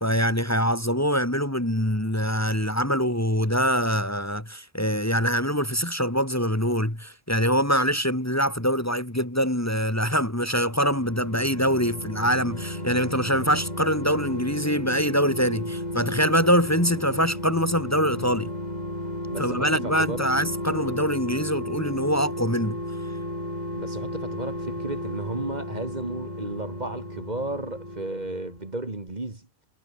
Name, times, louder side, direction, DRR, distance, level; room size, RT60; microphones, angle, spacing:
voice 1, 0.0-18.5 19.4-22.8, equal, 15° left, 2.6 m, -24 dB
sound 1, 10.5-28.8 29.1-29.2, left 1 dB, 40° left, 7.2 m, -34 dB
voice 2, 19.3-20.3 23.7-29.5, right 2 dB, 40° right, 2.7 m, -33 dB
omnidirectional pair, 1.1 m